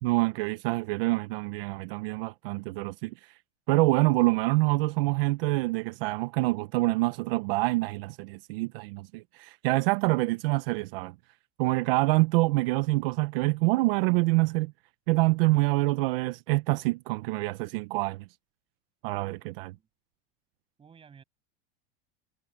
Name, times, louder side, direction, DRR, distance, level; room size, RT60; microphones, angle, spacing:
voice 1, 0.0-3.3 3.7-11.1 11.6-14.7 15.1-18.2 19.0-19.7, right 22 dB, 65° right, 0.7 m, -26 dB
voice 2, 19.4-19.9 20.8-21.2, right 6 dB, 15° right, 7.7 m, -55 dB
supercardioid pair, 170°, 31 cm